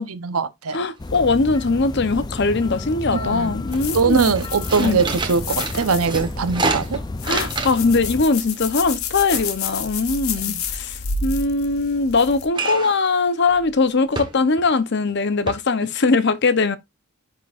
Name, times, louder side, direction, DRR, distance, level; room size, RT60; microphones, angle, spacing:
voice 1, 0.0-0.8 3.1-3.5 3.9-7.0 10.5-10.6, right 5 dB, 80° right, 0.8 m, -22 dB
voice 2, 0.7-4.3 4.8-5.0 7.2-16.8, left 3 dB, 50° left, 0.7 m, -21 dB
sound 1, 0.8-0.9 1.1-1.7 2.0-2.8 3.2-3.4 3.7-8.0 8.3-10.7 12.5-13.1 13.5-13.6 14.2-14.7 15.1-15.2 15.5-15.6, right 3 dB, 20° right, 1.1 m, -29 dB
sound 2, 1.0-8.3, left 2 dB, 20° left, 0.3 m, -32 dB
sound 3, 3.7-12.5, left 5 dB, 75° left, 1.2 m, -31 dB
10.5 x 3.9 x 2.4 m
head